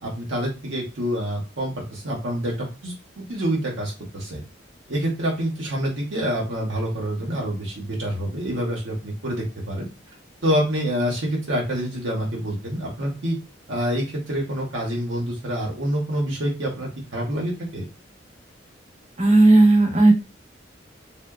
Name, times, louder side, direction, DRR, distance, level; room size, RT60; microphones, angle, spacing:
voice 1, 0.0-4.4 4.9-9.9 10.4-13.4 13.7-17.8, equal, 80° right, -3 dB, 0.8 m, -27 dB
voice 2, 19.2-20.1, right 2 dB, 35° right, 0 dB, 0.7 m, -14 dB
2.8 x 2.1 x 2.3 m, 0.29 s
head